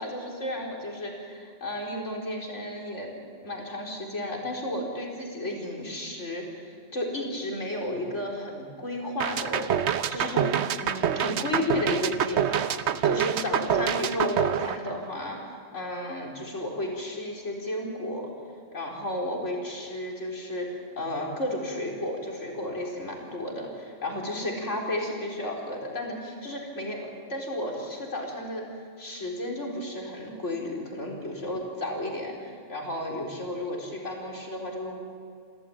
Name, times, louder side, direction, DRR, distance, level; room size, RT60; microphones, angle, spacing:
voice 1, 0.0-9.6 10.1-10.5 10.7-18.3 18.7-28.7 29.0-35.0, left 1 dB, 85° left, -1 dB, 4.7 m, -33 dB
sound 1, 9.2-15.4, right 8 dB, 70° right, 1.0 m, -26 dB
29.0 x 14.0 x 8.7 m, 2.2 s
omnidirectional pair, 1.2 m